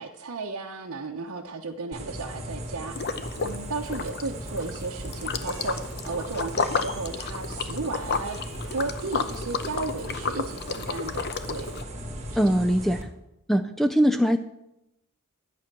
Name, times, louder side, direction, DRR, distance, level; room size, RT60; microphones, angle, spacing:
voice 1, 0.0-2.9 3.4-8.4 8.6-11.7 12.3-12.6, right 3 dB, 65° right, -1 dB, 0.9 m, -34 dB
sound 1, 1.9-13.0, right 1 dB, 30° right, 1.7 m, -37 dB
Liquid, 2.9-3.6 3.9-11.8, left 5 dB, 50° left, 0.8 m, -32 dB
voice 2, 12.4-13.1 13.5-14.4, equal, ahead, 8 dB, 0.4 m, -22 dB
11.5 x 8.6 x 6.1 m, 0.88 s
head